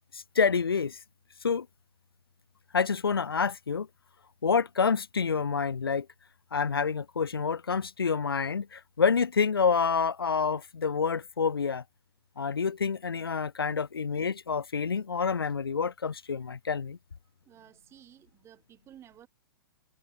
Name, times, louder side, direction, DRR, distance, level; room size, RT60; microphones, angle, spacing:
voice 1, 0.1-1.0 1.4-1.7 2.7-3.9 4.4-6.1 6.5-11.8 12.4-17.0, left 5 dB, 85° left, 0.4 m, -28 dB
voice 2, 17.4-19.3, right 10 dB, 20° right, 4.5 m, -54 dB
figure-of-eight pair, 115°, 12 cm